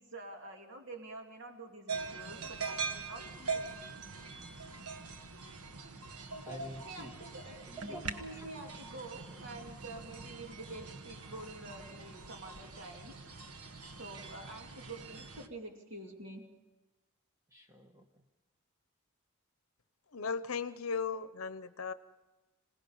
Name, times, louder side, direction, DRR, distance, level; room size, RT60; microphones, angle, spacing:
voice 1, 0.0-3.8 6.3-7.6 8.2-13.2 14.0-16.5, right 2 dB, 55° right, 2 dB, 2.6 m, -47 dB
sound 1, 1.9-15.5, right 4 dB, 90° right, 1.4 m, -43 dB
voice 2, 6.5-7.2 7.7-8.5 17.5-18.2, equal, 15° right, 3 dB, 1.3 m, -48 dB
voice 3, 20.1-21.9, left 5 dB, 70° left, 12 dB, 0.8 m, -36 dB
26.5 x 18.0 x 5.6 m, 1.1 s
head